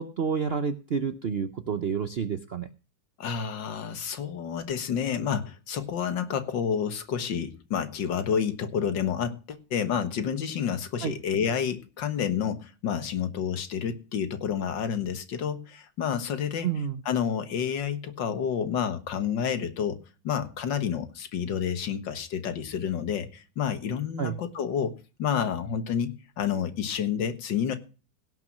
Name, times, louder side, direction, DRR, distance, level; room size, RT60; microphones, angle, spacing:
voice 1, 0.0-2.7 11.0-11.1 16.6-17.0 24.2-24.4, right 6 dB, 60° right, 10 dB, 0.6 m, -29 dB
voice 2, 3.2-16.7 17.1-20.0 20.2-24.9 25.2-27.8, left 7 dB, 75° left, 10 dB, 2.1 m, -29 dB
17.5 x 5.9 x 6.1 m, 0.35 s
omnidirectional pair, 2.0 m